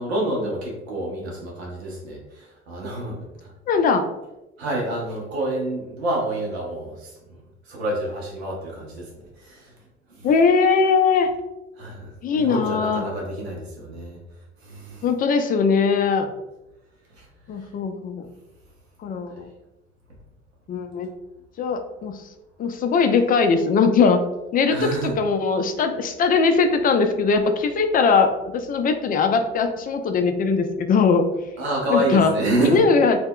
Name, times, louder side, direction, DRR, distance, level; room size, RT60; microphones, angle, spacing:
voice 1, 0.0-3.5 4.6-7.4 7.7-9.1 9.4-9.7 10.1-10.3 11.8-14.2 14.6-15.0 17.2-17.3 17.6-17.7 24.7-25.1 31.6-32.9, right 1 dB, 85° right, -2 dB, 0.7 m, -28 dB
voice 2, 3.7-4.1 10.2-11.3 12.2-13.0 15.0-16.3 17.5-18.3 19.0-19.5 20.7-21.1 21.6-22.2 22.6-24.2 24.5-24.9 25.2-31.3 31.9-32.3 32.6-33.2, left 5 dB, 30° left, 7 dB, 0.3 m, -20 dB
2.2 x 2.0 x 3.6 m, 0.97 s
hypercardioid pair, 60°, 31 cm